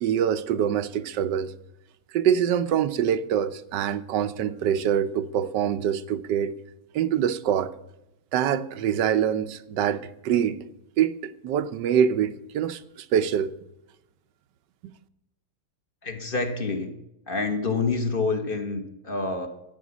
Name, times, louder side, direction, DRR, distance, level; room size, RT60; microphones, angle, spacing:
voice 1, 0.0-1.5 2.1-6.5 6.9-7.7 8.3-10.7 11.0-13.5 14.8-14.9, right 9 dB, 85° right, 1.4 m, -25 dB
voice 2, 16.0-16.9 17.3-19.5, left 3 dB, 35° left, 1.6 m, -27 dB
12.5 x 9.0 x 6.1 m
omnidirectional pair, 1.8 m